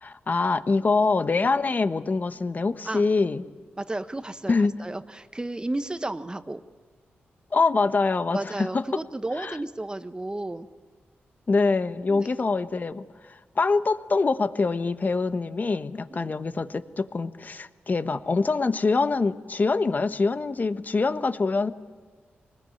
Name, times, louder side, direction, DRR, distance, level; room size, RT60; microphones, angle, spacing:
voice 1, 0.0-3.4 4.5-4.7 7.5-8.8 9.4-9.5 11.5-13.0 13.6-21.7, left 4 dB, 45° left, 11 dB, 1.1 m, -24 dB
voice 2, 3.8-6.6 8.3-10.7 12.1-12.3 16.1-16.3, right 2 dB, 20° right, 10 dB, 1.3 m, -33 dB
23.5 x 20.5 x 9.6 m, 1.4 s
cardioid pair, 65°, 4 cm